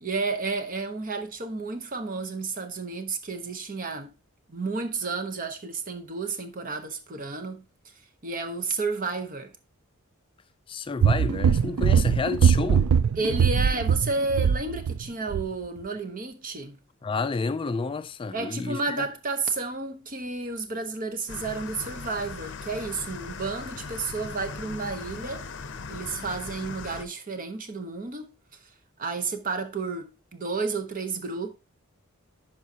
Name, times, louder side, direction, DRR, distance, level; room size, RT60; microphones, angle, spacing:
voice 1, 0.0-4.1 4.5-7.6 8.2-9.5 13.2-16.8 18.3-25.5 25.9-28.3 29.0-31.5, right 3 dB, 40° right, 1.0 m, -31 dB
voice 2, 10.7-12.9 17.0-19.1, left 4 dB, 25° left, 0.3 m, -30 dB
sound 1, 11.0-15.0 15.3-15.5, right 7 dB, 80° right, 0.4 m, -21 dB
sound 2, 21.3-27.0, left 4 dB, 55° left, 0.7 m, -39 dB
11.0 x 4.7 x 2.8 m
head